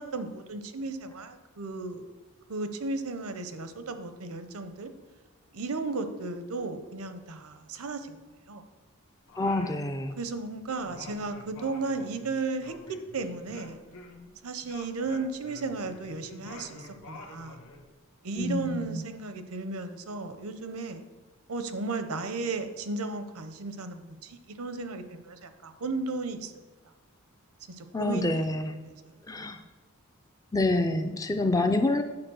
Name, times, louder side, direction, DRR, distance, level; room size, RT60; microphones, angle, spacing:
voice 1, 0.0-2.1 2.5-4.9 5.5-8.2 8.5-8.6 10.2-13.8 14.4-17.6 18.2-21.0 21.5-26.5 27.7-28.6 28.8-29.7, right 3 dB, 80° right, 9 dB, 0.7 m, -35 dB
Singing, 9.3-10.4 10.7-14.3 14.6-17.8, left 3 dB, 75° left, 1.3 m, -48 dB
voice 2, 9.4-10.1 18.4-19.0 27.9-28.7 29.3-29.6 30.5-32.0, left 2 dB, 15° left, 7 dB, 0.4 m, -27 dB
8.8 x 4.2 x 6.3 m, 1.3 s
head